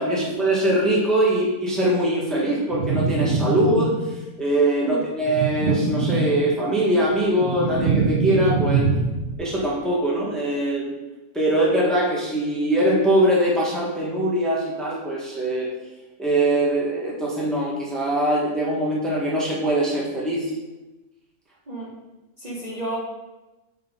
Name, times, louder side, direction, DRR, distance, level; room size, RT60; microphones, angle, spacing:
voice 1, 0.0-3.9 4.4-8.9 9.4-11.0 11.3-15.7 16.2-20.4, right 1 dB, ahead, -4 dB, 1.0 m, -22 dB
sound 1, 2.7-4.3 5.2-6.7 7.1-9.5, right 4 dB, 60° right, 0.9 m, -24 dB
voice 2, 22.4-23.0, right 2 dB, 35° right, -5 dB, 1.0 m, -30 dB
7.5 x 3.6 x 3.6 m, 1.1 s
omnidirectional pair, 1.4 m